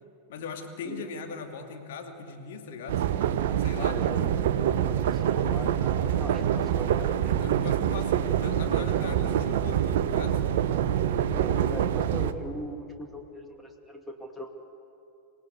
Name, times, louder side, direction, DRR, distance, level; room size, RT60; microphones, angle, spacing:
voice 1, 0.3-3.1 3.6-4.0 7.3-10.4, left 5 dB, 55° left, 4 dB, 2.6 m, -39 dB
sound 1, 2.9-12.3, right 10 dB, 55° right, 0.9 m, -26 dB
voice 2, 3.8-4.4 5.0-7.4 11.3-14.5, right 1 dB, 5° left, 3 dB, 2.2 m, -40 dB
27.0 x 18.0 x 8.2 m, 2.8 s
figure-of-eight pair, 90°, 0 cm